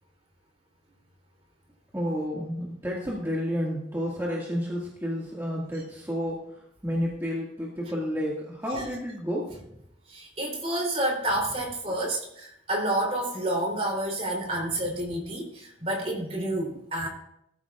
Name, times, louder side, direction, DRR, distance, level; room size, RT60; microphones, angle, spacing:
voice 1, 1.9-6.4 6.8-9.7, equal, 15° right, -5 dB, 1.9 m, -30 dB
voice 2, 10.1-17.1, right 1 dB, 35° right, -1 dB, 3.3 m, -29 dB
19.0 x 13.5 x 2.4 m, 0.77 s
head